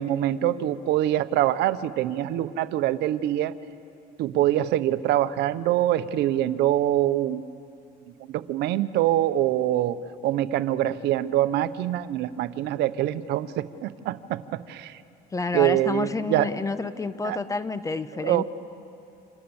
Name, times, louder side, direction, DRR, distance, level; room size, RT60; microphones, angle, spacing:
voice 1, 0.0-3.5 4.2-7.4 8.3-10.0 10.2-15.0 15.5-16.5 17.2-17.4 18.2-18.4, right 13 dB, 85° right, 13 dB, 0.9 m, -24 dB
voice 2, 15.3-18.4, left 3 dB, 20° left, 13 dB, 0.9 m, -29 dB
29.5 x 26.5 x 7.1 m, 2.5 s
cardioid pair, 110°, 17 cm